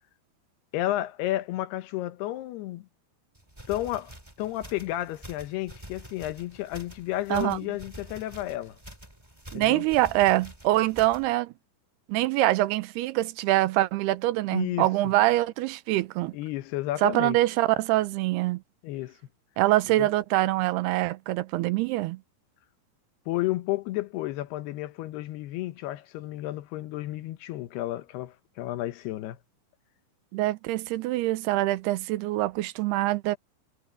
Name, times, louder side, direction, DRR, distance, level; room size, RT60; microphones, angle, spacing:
voice 1, 0.7-2.9 3.7-4.1 4.4-8.8 9.5-9.8 14.5-15.1 16.3-17.4 18.8-19.1 20.0-20.1 23.3-29.4, left 15 dB, 85° left, 3.0 m, -32 dB
sound 1, 3.4-11.3, right 1 dB, 5° right, 3.3 m, -47 dB
voice 2, 9.5-11.5 12.1-16.4 17.0-18.6 19.6-22.2 30.3-33.4, right 17 dB, 85° right, 2.8 m, -24 dB
omnidirectional pair, 4.5 m